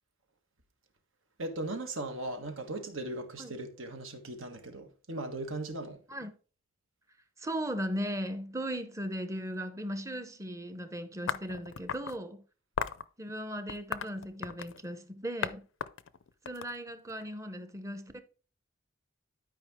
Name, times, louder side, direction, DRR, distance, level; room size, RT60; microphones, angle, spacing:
voice 1, 1.4-6.0, right 2 dB, 75° right, 1.6 m, -38 dB
voice 2, 7.4-12.4 13.2-15.6 16.4-18.2, equal, 15° right, 0.8 m, -37 dB
sound 1, 11.3-12.2 12.8-13.0 13.7-14.8 15.4-15.5 15.8-17.2, left 6 dB, 70° left, 0.5 m, -36 dB
12.0 x 5.2 x 3.6 m
head